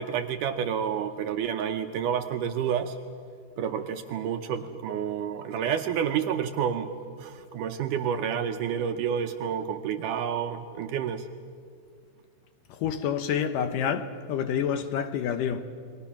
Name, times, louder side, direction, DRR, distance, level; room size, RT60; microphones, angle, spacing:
voice 1, 0.0-3.0 3.6-6.9 7.2-11.3, right 8 dB, 75° right, 2.0 m, -29 dB
voice 2, 12.7-15.6, left 8 dB, 75° left, 2.3 m, -28 dB
29.5 x 22.5 x 6.0 m
omnidirectional pair, 4.3 m